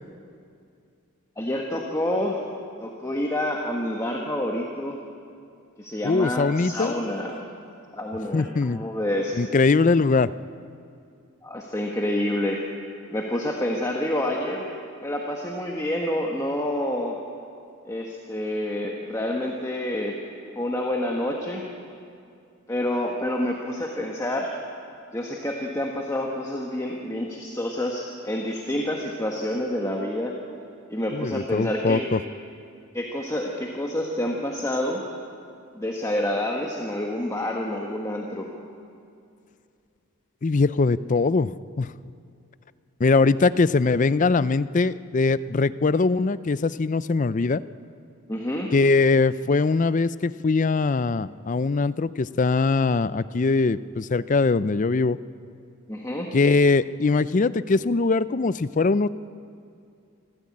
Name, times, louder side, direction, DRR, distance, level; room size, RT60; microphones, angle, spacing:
voice 1, 1.4-2.4 2.8-5.0 5.8-7.4 7.9-9.4 11.4-12.6 13.1-14.7 15.0-17.2 17.8-20.2 20.5-21.6 22.7-24.5 25.1-30.3 30.9-32.1 32.9-35.0 35.7-38.5 48.3-48.7 55.9-56.3, left 1 dB, 15° left, 0 dB, 1.4 m, -28 dB
voice 2, 6.0-7.1 8.3-8.9 9.4-10.3 31.1-32.2 40.4-41.5 41.8-41.9 43.0-47.6 48.7-55.2 56.3-59.1, left 3 dB, 35° left, 16 dB, 0.4 m, -21 dB
26.0 x 14.5 x 8.6 m, 2.5 s
head